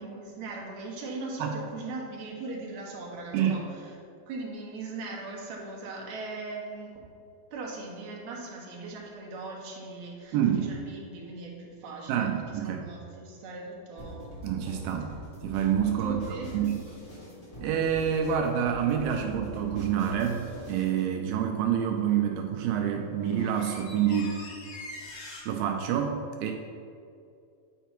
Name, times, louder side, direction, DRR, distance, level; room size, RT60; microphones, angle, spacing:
voice 1, 0.0-3.9 4.3-7.0 7.5-14.3 16.0-16.7, right 3 dB, 60° right, -3 dB, 2.0 m, -39 dB
voice 2, 10.3-10.7 12.1-12.8 14.4-15.1 15.4-16.8 17.6-24.4 25.5-26.5, right 9 dB, 80° right, 3 dB, 2.2 m, -27 dB
sound 1, 14.0-21.1, right 1 dB, 35° left, 1.1 m, -42 dB
sound 2, 18.8-19.0 22.6-22.7 23.0-25.4, left 2 dB, 75° left, 3.1 m, -43 dB
9.2 x 4.5 x 4.4 m, 2.4 s
omnidirectional pair, 4.4 m